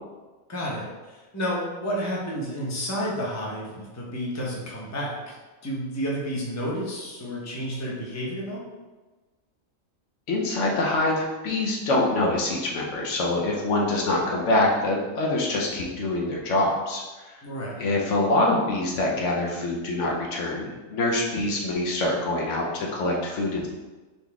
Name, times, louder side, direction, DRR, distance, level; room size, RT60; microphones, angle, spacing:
voice 1, 0.5-5.3 5.6-8.6 17.4-17.8, equal, 15° left, -4 dB, 0.6 m, -31 dB
voice 2, 10.3-17.0 17.8-23.7, left 2 dB, 70° left, -1 dB, 1.0 m, -25 dB
4.0 x 3.0 x 3.4 m, 1.2 s
omnidirectional pair, 1.4 m